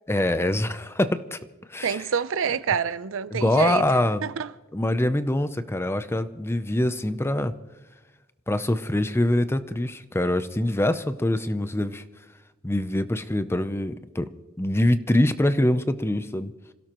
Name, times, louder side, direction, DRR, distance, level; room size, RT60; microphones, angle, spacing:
voice 1, 0.1-1.4 1.7-2.0 3.3-4.2 4.7-7.5 8.5-12.0 12.6-14.3 14.6-16.5, left 1 dB, 10° left, 0.6 m, -24 dB
voice 2, 1.8-4.5, right 6 dB, 65° right, 0.6 m, -27 dB
26.5 x 17.0 x 3.0 m
head